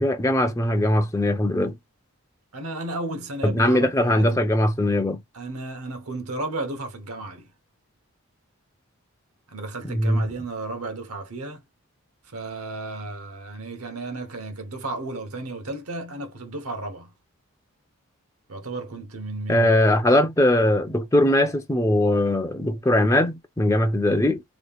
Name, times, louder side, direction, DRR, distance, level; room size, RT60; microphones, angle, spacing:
voice 1, 0.0-1.8 3.4-5.2 9.9-10.3 19.5-24.4, left 1 dB, 15° left, 0.5 m, -20 dB
voice 2, 2.5-4.5 5.3-7.5 9.5-11.7 12.2-17.1 18.5-19.8, right 2 dB, 85° right, 1.0 m, -33 dB
3.5 x 3.1 x 2.3 m
head